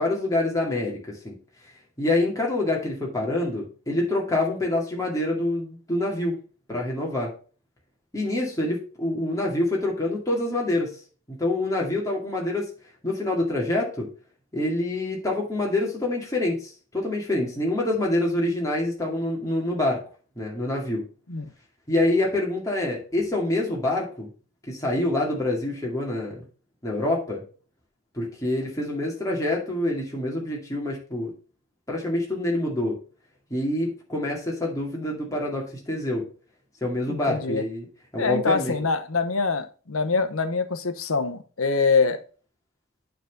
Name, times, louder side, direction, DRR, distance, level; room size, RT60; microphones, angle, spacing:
voice 1, 0.0-1.3 2.0-6.4 6.7-7.3 8.1-11.0 11.3-12.7 13.0-14.1 14.5-20.0 20.4-21.0 21.9-24.3 24.7-26.4 26.8-27.4 28.1-31.3 31.9-33.0 33.5-36.3 36.8-37.9 38.1-38.8, left 1 dB, 15° left, 2.2 m, -26 dB
voice 2, 37.1-37.6 38.2-42.2, left 4 dB, 80° left, 1.0 m, -24 dB
9.4 x 4.0 x 5.2 m
head